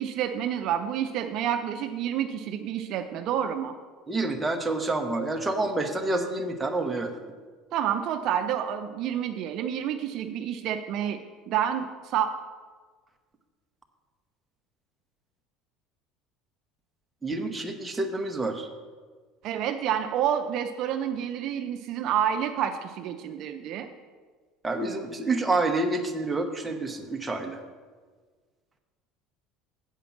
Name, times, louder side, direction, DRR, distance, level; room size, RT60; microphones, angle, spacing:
voice 1, 0.0-3.7 7.7-11.2 11.5-12.3 19.4-23.9, right 9 dB, 55° right, 6 dB, 0.5 m, -29 dB
voice 2, 4.1-7.1 17.2-18.7 24.6-27.6, right 2 dB, 15° right, 3 dB, 0.9 m, -28 dB
8.2 x 5.1 x 7.2 m, 1.5 s
supercardioid pair, 125°, 0 cm